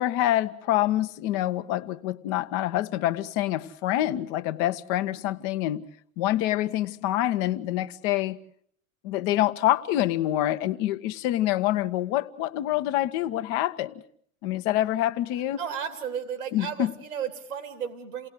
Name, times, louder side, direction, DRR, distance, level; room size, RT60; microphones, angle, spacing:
voice 1, 0.0-5.8 6.2-8.4 9.0-13.9 14.4-15.6 16.5-16.9, left 14 dB, 50° left, 1.2 m, -26 dB
voice 2, 15.6-18.3, right 8 dB, 80° right, 2.5 m, -33 dB
28.5 x 19.0 x 8.1 m
figure-of-eight pair, 75°, 42 cm